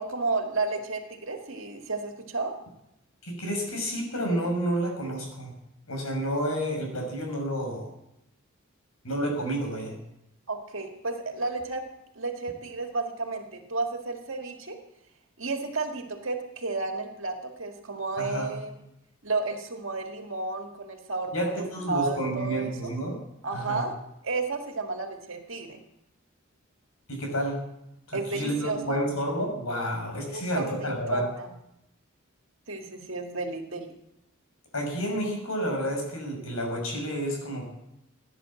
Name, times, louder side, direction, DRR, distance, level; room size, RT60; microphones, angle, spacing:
voice 1, 0.0-2.6 10.5-11.8 12.2-14.8 15.4-18.8 19.2-22.9 23.4-24.0 24.2-25.8 28.1-29.1 30.3-31.5 32.7-34.0, right 3 dB, 65° right, 4 dB, 1.9 m, -32 dB
voice 2, 3.2-5.5 5.9-7.9 9.0-9.9 18.2-18.6 21.3-23.2 23.5-23.8 27.1-27.6 28.1-31.3 34.7-37.7, equal, 90° left, 1 dB, 6.2 m, -30 dB
17.0 x 9.9 x 7.6 m, 0.85 s
head